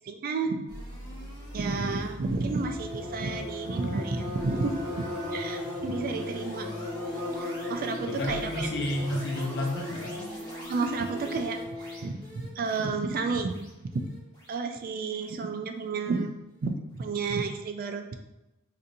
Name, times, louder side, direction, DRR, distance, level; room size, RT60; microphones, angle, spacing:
voice 1, 0.0-0.6 1.5-5.0 5.3-6.7 7.3-8.7 10.7-13.5 13.8-14.0 14.5-16.3 16.6-18.2, right 4 dB, 45° right, 6 dB, 0.3 m, -31 dB
sound 1, 0.7-15.9, equal, 20° left, 1.2 m, -43 dB
sound 2, 2.5-12.1, left 2 dB, 65° right, 0.9 m, -37 dB
voice 2, 8.0-10.1, left 1 dB, 55° left, -1 dB, 0.7 m, -31 dB
4.1 x 2.6 x 2.5 m, 0.97 s
head